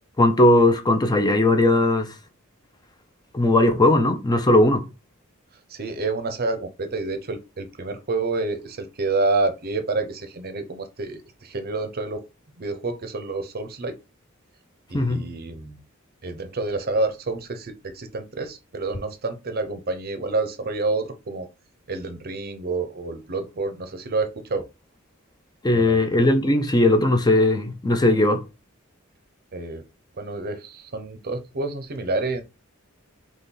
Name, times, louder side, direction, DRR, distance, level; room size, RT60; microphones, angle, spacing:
voice 1, 0.2-2.1 3.3-4.9 14.9-15.3 25.6-28.4, left 1 dB, 20° left, 0.6 m, -18 dB
voice 2, 5.7-12.2 12.6-14.0 14.9-15.8 16.2-21.5 21.9-24.7 25.7-26.0 29.5-29.8 30.2-32.4, right 3 dB, 50° right, 0.7 m, -28 dB
4.1 x 3.2 x 3.8 m
head